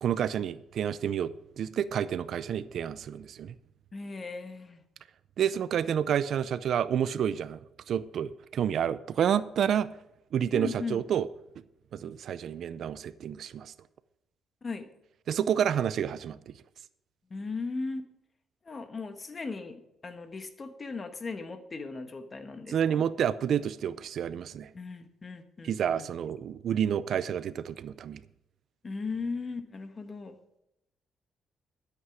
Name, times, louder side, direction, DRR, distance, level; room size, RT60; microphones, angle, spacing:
voice 1, 0.0-3.5 5.4-7.6 7.9-9.9 10.3-11.3 11.9-13.7 15.3-16.5 22.7-24.7 25.6-28.2, right 9 dB, 65° right, 0.5 m, -29 dB
voice 2, 3.9-4.8 10.5-11.0 14.6-14.9 17.3-18.0 18.6-19.8 20.0-22.7 24.7-26.1 28.8-30.3, left 4 dB, 35° left, 1.3 m, -37 dB
12.5 x 8.3 x 4.9 m
cardioid pair, 90°, 0 cm